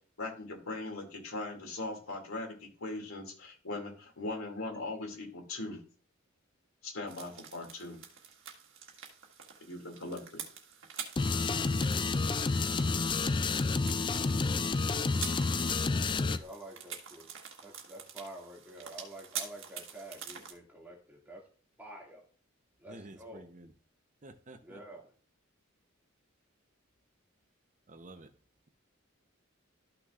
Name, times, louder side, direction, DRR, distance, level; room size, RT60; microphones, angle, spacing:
voice 1, 0.2-5.8 6.8-8.0 9.6-10.4, left 2 dB, 90° left, 2.6 m, -40 dB
sound 1, 7.1-20.5, right 7 dB, 65° right, 1.7 m, -46 dB
sound 2, 11.2-16.4, left 4 dB, 25° left, 0.3 m, -29 dB
voice 2, 16.0-17.3 17.6-21.5 21.8-22.2 22.8-23.5 24.6-25.1, right 1 dB, 10° right, 2.3 m, -48 dB
voice 3, 22.9-23.7 24.2-24.8 27.9-28.3, right 2 dB, 40° right, 0.9 m, -50 dB
13.0 x 6.0 x 2.5 m
head